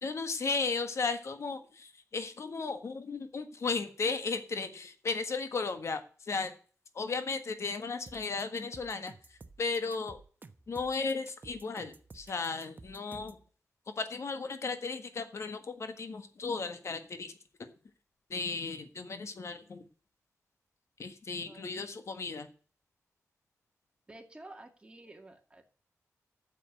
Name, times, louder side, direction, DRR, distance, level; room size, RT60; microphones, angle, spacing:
voice 1, 0.0-6.5 6.9-10.2 10.7-13.4 14.0-17.3 17.6-17.7 18.3-19.8 21.0-22.5, left 4 dB, 60° left, 9 dB, 1.5 m, -35 dB
sound 1, 8.1-13.4, right 3 dB, 35° right, 1.1 m, -52 dB
voice 2, 21.5-21.9 24.1-25.6, right 2 dB, 20° right, 4 dB, 2.2 m, -51 dB
8.3 x 7.3 x 7.8 m, 0.41 s
cardioid pair, 75°, 5 cm